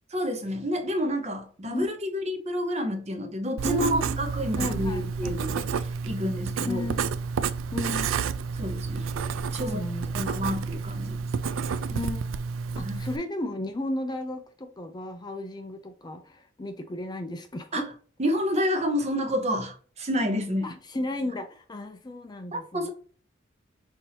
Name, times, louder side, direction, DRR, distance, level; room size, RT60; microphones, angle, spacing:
voice 1, 0.1-6.8 8.5-9.1 9.5-9.8 10.1-11.2 12.8-13.0 17.7-17.8 18.2-20.7 22.5-22.9, equal, 35° right, 0.8 m, -29 dB
voice 2, 3.6-4.2 4.6-5.4 6.7-7.0 7.7-8.2 9.6-10.5 11.9-12.4 12.8-17.9 20.6-22.9, left 1 dB, 20° left, 0.4 m, -34 dB
Writing, 3.6-13.2, right 5 dB, 80° right, 0.3 m, -30 dB
5.7 x 2.6 x 2.8 m
head